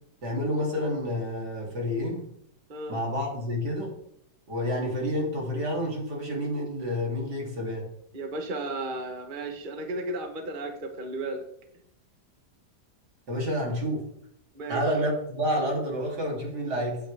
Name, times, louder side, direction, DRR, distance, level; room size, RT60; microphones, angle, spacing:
voice 1, 0.2-2.2 2.9-3.9 4.5-7.9 13.3-14.0 14.7-17.0, equal, 75° right, -1 dB, 3.9 m, -29 dB
voice 2, 8.1-11.4 14.5-14.8, right 2 dB, 30° right, 5 dB, 1.4 m, -34 dB
14.5 x 9.0 x 3.6 m, 0.72 s
omnidirectional pair, 1.8 m